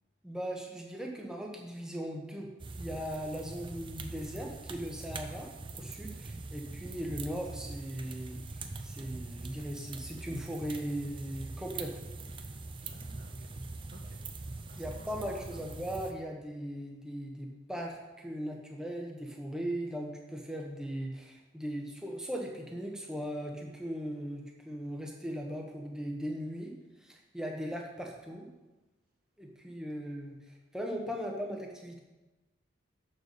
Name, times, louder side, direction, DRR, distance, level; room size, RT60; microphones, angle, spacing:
voice 1, 0.2-2.5 2.8-5.5 5.7-8.4 8.8-11.9 14.7-26.7 27.0-28.5 29.4-32.0, equal, 5° right, 0 dB, 1.2 m, -38 dB
sound 1, 2.6-16.1, right 3 dB, 25° right, 0.6 m, -43 dB
voice 2, 12.8-13.5 13.9-14.2 14.7-15.7 31.1-31.2, right 1 dB, 50° right, 1 dB, 1.6 m, -55 dB
6.9 x 6.7 x 6.7 m, 1.1 s
head